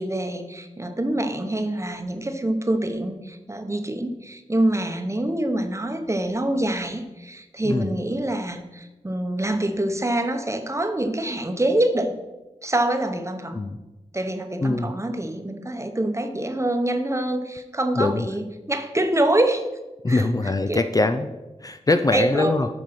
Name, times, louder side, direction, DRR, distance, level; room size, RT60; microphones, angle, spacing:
voice 1, 0.0-12.1 12.6-13.6 14.1-19.6 20.1-20.3 20.7-20.8 22.1-22.6, right 1 dB, 25° right, 7 dB, 1.0 m, -25 dB
voice 2, 14.6-14.9 18.0-18.3 20.0-21.3 21.6-22.7, left 2 dB, 30° left, 8 dB, 0.5 m, -22 dB
7.7 x 5.3 x 5.9 m, 1.1 s
wide cardioid pair, 60°, 13 cm